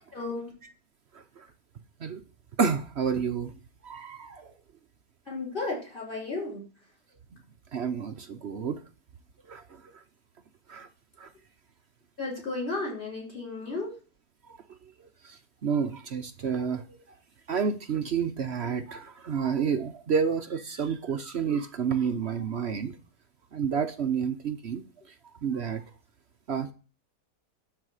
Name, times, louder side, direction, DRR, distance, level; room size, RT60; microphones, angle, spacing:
voice 1, 0.1-0.5 5.3-6.6 12.2-13.9, left 3 dB, 30° left, 5.6 m, -33 dB
voice 2, 2.6-3.5 3.8-4.5 7.7-8.8 9.5-9.6 10.7-10.9 11.2-11.3 15.2-16.8 17.5-22.9 23.5-24.8 25.4-25.8 26.5-26.7, right 6 dB, 50° right, 0.9 m, -29 dB
12.5 x 4.8 x 8.0 m
omnidirectional pair, 1.8 m